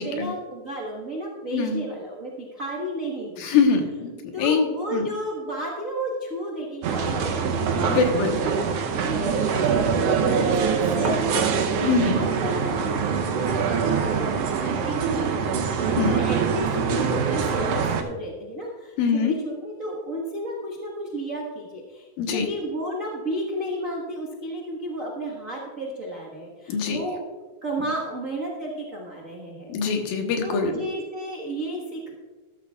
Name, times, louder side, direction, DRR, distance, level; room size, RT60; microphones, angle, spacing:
voice 1, 0.0-3.5 4.3-11.8 12.1-27.2 27.6-29.7 30.4-32.1, right 1 dB, 65° right, -3 dB, 0.8 m, -33 dB
voice 2, 3.4-4.1 4.4-5.0 7.8-8.4 11.8-12.2 16.0-16.2 19.0-19.3 22.2-22.5 26.7-27.0 29.7-30.7, left 5 dB, 85° left, 3 dB, 3.0 m, -23 dB
sound 1, 6.8-18.0, right 6 dB, 80° right, 1.4 m, -24 dB
13.5 x 12.5 x 2.4 m, 1.4 s
omnidirectional pair, 3.9 m